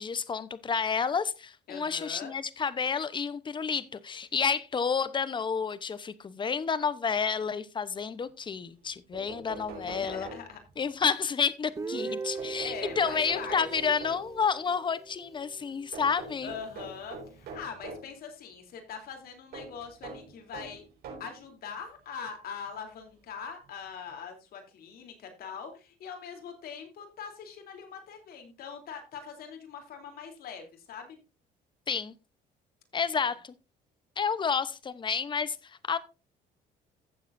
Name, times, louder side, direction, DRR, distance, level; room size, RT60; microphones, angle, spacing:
voice 1, 0.0-10.3 10.8-16.5 31.9-32.1 32.9-33.5 34.2-36.0, left 6 dB, 30° left, 0.9 m, -30 dB
voice 2, 1.7-2.3 9.7-10.6 11.9-13.9 16.4-20.8 21.2-31.2 33.0-33.3, left 6 dB, 65° left, 3.3 m, -42 dB
sound 1, 8.8-8.9 9.1-10.9 12.4-14.4 15.9-18.1 19.5-21.4 22.3-22.4 23.7-23.8 24.1-24.2, right 3 dB, 70° right, 5.0 m, -44 dB
Guitar, 11.8-15.6, right 4 dB, 20° right, 0.6 m, -39 dB
15.5 x 7.3 x 2.6 m
cardioid pair, 110°, 17 cm